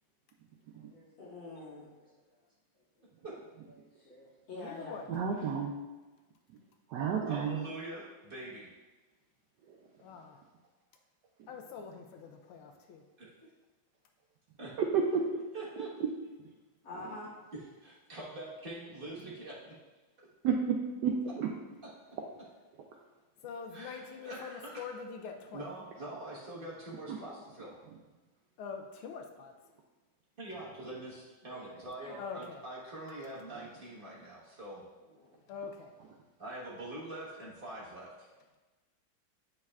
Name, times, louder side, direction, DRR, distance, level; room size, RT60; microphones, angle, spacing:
voice 1, 0.7-2.4 3.7-5.0 16.8-17.3 31.5-32.4 35.0-35.4, left 2 dB, 65° left, -9 dB, 2.9 m, -48 dB
voice 2, 4.5-5.1 10.0-10.4 11.5-13.0 23.4-25.7 28.6-29.5 32.2-32.6 35.5-35.9, left 6 dB, 85° left, 4 dB, 1.5 m, -44 dB
voice 3, 5.1-5.8 6.9-7.6 14.8-15.2 16.0-16.1 20.4-20.8 21.0-21.5 27.1-27.2, right 6 dB, 80° right, 1 dB, 0.9 m, -30 dB
voice 4, 7.3-8.7 13.2-13.5 14.6-14.7 15.5-15.9 17.8-19.7 21.2-21.3 23.7-24.8 25.5-27.8 30.4-34.8 36.4-38.3, right 2 dB, 35° right, -6 dB, 1.0 m, -44 dB
8.6 x 5.3 x 2.3 m, 1.2 s
omnidirectional pair, 2.3 m